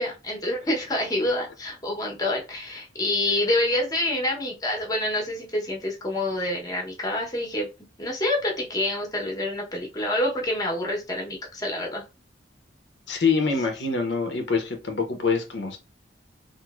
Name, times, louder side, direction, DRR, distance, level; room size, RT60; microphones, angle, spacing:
voice 1, 0.0-7.7 8.0-12.0, left 1 dB, 20° left, 0.8 m, -27 dB
voice 2, 13.1-15.8, left 4 dB, 80° left, 0.7 m, -25 dB
3.0 x 2.5 x 2.3 m
head